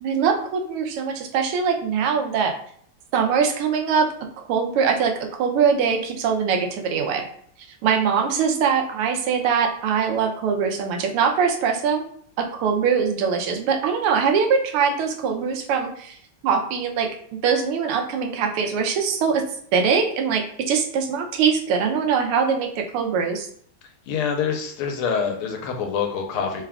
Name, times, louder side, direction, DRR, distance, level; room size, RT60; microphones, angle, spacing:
voice 1, 0.0-2.5 3.1-7.2 7.8-12.0 12.4-16.2 16.4-17.1 17.4-19.4 19.7-23.5, right 6 dB, 90° right, 4 dB, 1.6 m, -22 dB
voice 2, 24.1-26.6, left 6 dB, 85° left, 2 dB, 1.6 m, -25 dB
4.1 x 2.3 x 3.5 m, 0.62 s
omnidirectional pair, 2.4 m